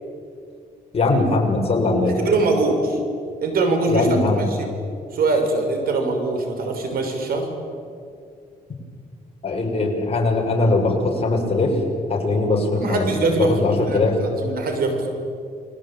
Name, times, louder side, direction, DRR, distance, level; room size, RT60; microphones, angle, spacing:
voice 1, 0.9-2.1 3.9-4.4 9.4-11.8 12.1-13.0 13.4-14.2, left 3 dB, 40° left, 0 dB, 7.1 m, -20 dB
voice 2, 2.1-3.0 3.4-4.1 4.3-4.7 5.1-7.5 12.7-15.1, right 3 dB, 70° right, 4 dB, 6.2 m, -22 dB
29.5 x 22.0 x 9.1 m, 2.3 s
cardioid pair, 125°, 16 cm